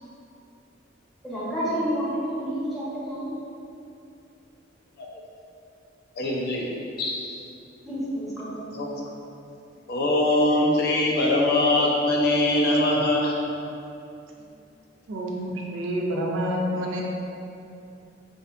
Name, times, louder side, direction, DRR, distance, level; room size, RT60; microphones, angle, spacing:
voice 1, 1.2-3.3 7.9-8.7, equal, ahead, -11 dB, 0.7 m, -29 dB
voice 2, 6.2-6.7 7.0-7.2 8.7-9.0 9.9-13.4, left 1 dB, 55° left, -3 dB, 0.4 m, -22 dB
voice 3, 15.1-17.0, equal, 85° right, -1 dB, 0.4 m, -28 dB
2.6 x 2.5 x 2.4 m, 2.7 s
head